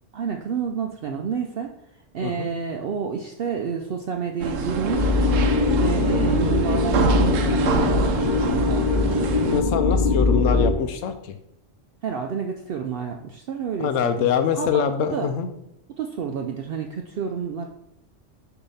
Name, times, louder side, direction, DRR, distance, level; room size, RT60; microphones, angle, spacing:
voice 1, 0.1-1.7 2.1-5.2 5.8-9.3 12.0-13.9 14.2-14.3 14.5-14.8 15.1-15.3 16.0-17.7, right 6 dB, 60° right, 3 dB, 0.6 m, -29 dB
sound 1, 4.4-9.6, right 4 dB, 85° right, 1.0 m, -26 dB
sound 2, 4.9-10.7, left 3 dB, 40° left, 0.9 m, -21 dB
voice 2, 9.5-11.4 13.8-15.5, left 8 dB, 90° left, 8 dB, 1.0 m, -24 dB
6.8 x 2.8 x 5.5 m, 0.78 s
omnidirectional pair, 1.3 m